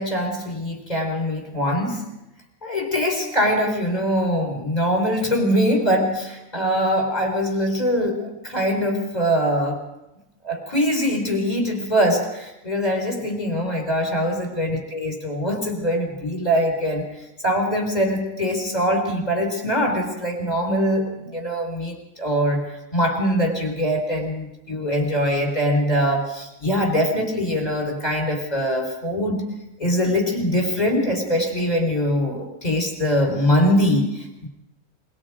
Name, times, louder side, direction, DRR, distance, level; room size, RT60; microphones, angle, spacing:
voice 1, 0.0-2.0 2.6-9.8 10.4-17.0 17.4-22.6 22.9-29.4 29.8-34.5, equal, 30° left, 3 dB, 4.9 m, -22 dB
24.5 x 23.5 x 5.1 m, 0.92 s
omnidirectional pair, 1.4 m